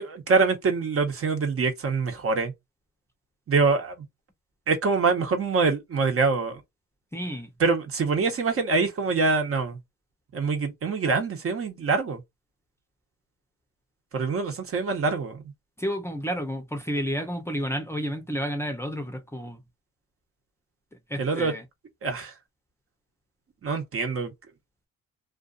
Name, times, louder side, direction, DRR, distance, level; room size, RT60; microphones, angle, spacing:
voice 1, 0.0-2.5 3.5-3.9 4.7-6.6 7.6-9.8 10.3-12.2 14.1-15.4 21.2-21.5 22.0-22.3 23.6-24.3, right 4 dB, 50° right, 1.0 m, -25 dB
voice 2, 7.1-7.5 15.8-19.6 21.1-21.6, equal, 10° left, 0.7 m, -31 dB
2.5 x 2.4 x 2.5 m
cardioid pair, 90°, 30 cm